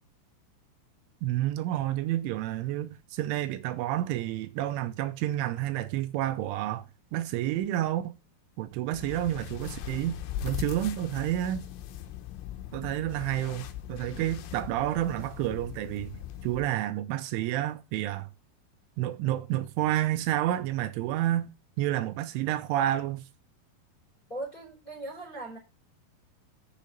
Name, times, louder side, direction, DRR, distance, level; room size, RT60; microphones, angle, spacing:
voice 1, 1.2-6.9 7.1-8.1 8.6-11.7 12.7-16.2 16.4-18.3 19.0-21.5 21.8-23.2, right 13 dB, 85° right, 3.2 m, -30 dB
sound 1, 8.9-16.7, left 11 dB, 80° left, 3.3 m, -40 dB
voice 2, 24.3-25.6, right 2 dB, 10° left, 3.3 m, -39 dB
7.3 x 7.1 x 5.3 m
omnidirectional pair, 5.6 m